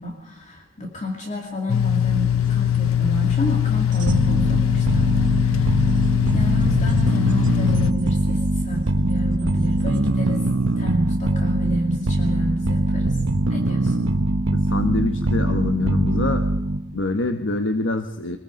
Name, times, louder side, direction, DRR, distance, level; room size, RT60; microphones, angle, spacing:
voice 1, 0.0-6.0 6.3-10.5 10.8-13.2 13.5-14.1, equal, 35° left, 1 dB, 2.6 m, -30 dB
sound 1, 1.7-7.9, left 10 dB, 90° left, 0.8 m, -21 dB
sound 2, 2.1-10.8, right 1 dB, 40° right, 5.5 m, -36 dB
sound 3, 4.1-17.0, right 2 dB, 80° right, 1.1 m, -22 dB
voice 2, 14.5-16.5 16.9-18.4, left 2 dB, 65° left, 6 dB, 1.3 m, -25 dB
25.0 x 20.0 x 5.3 m, 0.84 s
head